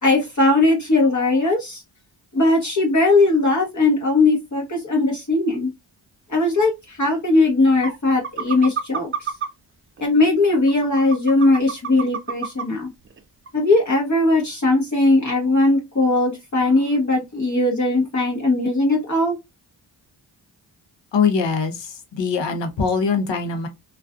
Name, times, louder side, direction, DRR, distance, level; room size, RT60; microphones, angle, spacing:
voice 1, 0.0-1.8 2.3-5.7 6.3-9.3 10.0-12.9 13.5-19.4, left 2 dB, 40° left, 0.9 m, -19 dB
sound 1, 7.1-7.2 7.8-8.0 8.2-9.5 10.0-10.1 10.5-12.6 13.1-13.2 13.5-13.6, right 7 dB, 30° right, 0.4 m, -28 dB
voice 2, 21.1-23.7, left 5 dB, 70° left, 0.8 m, -22 dB
2.4 x 2.3 x 2.3 m
cardioid pair, 40°, 47 cm